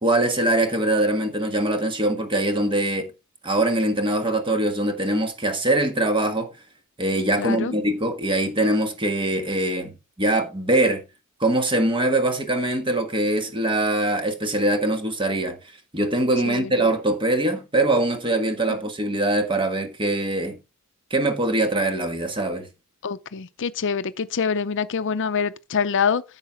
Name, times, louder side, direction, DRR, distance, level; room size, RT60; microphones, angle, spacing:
voice 1, 0.0-3.1 3.4-6.5 7.0-11.0 11.4-15.6 15.9-20.6 21.1-22.7, right 1 dB, 25° right, 1.5 m, -22 dB
voice 2, 7.4-7.7 16.5-16.8 23.0-26.2, left 6 dB, 60° left, 0.6 m, -25 dB
9.9 x 7.3 x 3.5 m
head